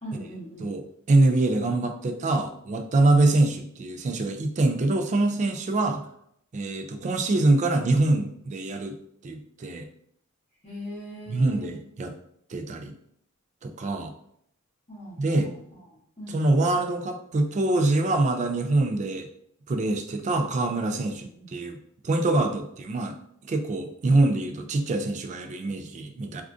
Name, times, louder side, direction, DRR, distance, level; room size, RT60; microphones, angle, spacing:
voice 1, 0.0-0.8 10.6-11.8 14.9-15.6 16.2-16.4 21.2-21.5, equal, 30° left, -10 dB, 0.8 m, -40 dB
voice 2, 0.6-6.0 6.5-9.0 9.2-9.9 11.3-12.1 12.5-12.9 13.6-14.1 15.2-15.5 16.3-19.3 19.7-21.8 22.0-23.1 23.4-26.4, right 2 dB, 35° right, 6 dB, 0.3 m, -24 dB
3.5 x 2.4 x 2.5 m, 0.71 s
head